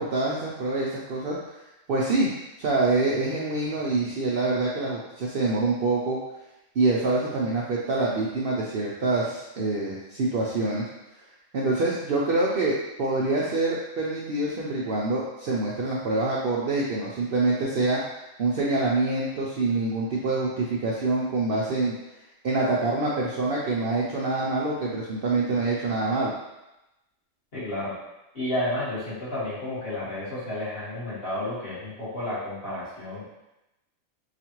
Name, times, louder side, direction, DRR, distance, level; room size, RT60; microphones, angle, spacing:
voice 1, 0.0-1.4 1.9-2.3 2.6-6.2 6.8-10.8 11.5-18.0 18.4-21.9 22.4-26.3, right 2 dB, 60° right, -5 dB, 0.6 m, -25 dB
voice 2, 27.5-28.0 28.3-33.2, left 1 dB, 45° left, -10 dB, 1.7 m, -31 dB
4.9 x 2.4 x 2.9 m, 0.95 s
omnidirectional pair, 1.4 m